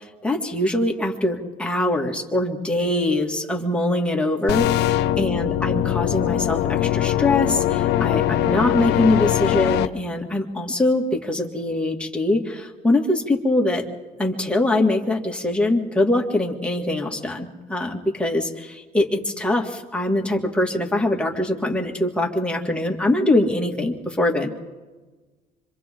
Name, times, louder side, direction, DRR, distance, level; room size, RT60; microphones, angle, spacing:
voice 1, 0.2-4.9 5.2-13.8 14.2-24.5, left 1 dB, 5° left, 0 dB, 2.4 m, -23 dB
sound 1, 4.5-9.9, left 12 dB, 85° left, 0.7 m, -21 dB
26.0 x 25.5 x 3.9 m, 1.3 s
cardioid pair, 110°, 17 cm